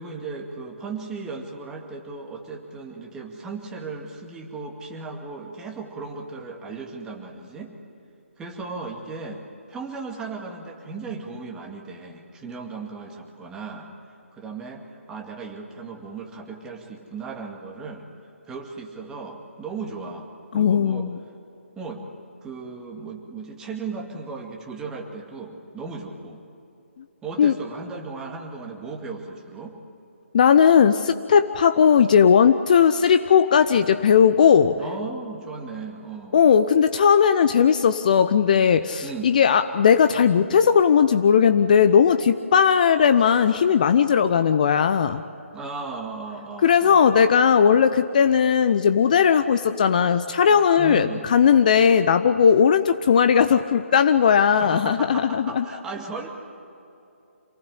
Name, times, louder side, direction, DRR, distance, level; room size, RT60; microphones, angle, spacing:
voice 1, 0.0-7.7 8.4-9.4 9.7-13.9 14.3-18.1 18.4-20.3 20.5-21.1 21.8-22.0 22.4-26.4 27.2-29.7 34.8-36.4 39.0-39.3 45.5-47.1 50.8-51.2 54.5-56.3, right 4 dB, 10° right, 1 dB, 2.2 m, -36 dB
voice 2, 20.5-21.2 27.4-27.5 30.3-34.7 36.3-45.2 46.6-55.6, left 7 dB, 35° left, 10 dB, 0.7 m, -17 dB
27.5 x 19.0 x 9.8 m, 2.7 s
figure-of-eight pair, 145°, 7 cm